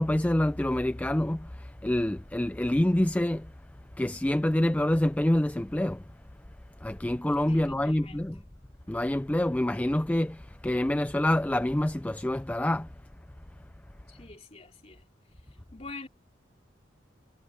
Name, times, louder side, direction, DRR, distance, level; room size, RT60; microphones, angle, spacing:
voice 1, 0.0-3.5 4.0-6.0 6.8-8.3 8.9-12.9, left 1 dB, 10° left, 0.3 m, -26 dB
voice 2, 7.5-8.3 14.1-15.1 15.7-16.1, left 3 dB, 35° left, 2.9 m, -45 dB
head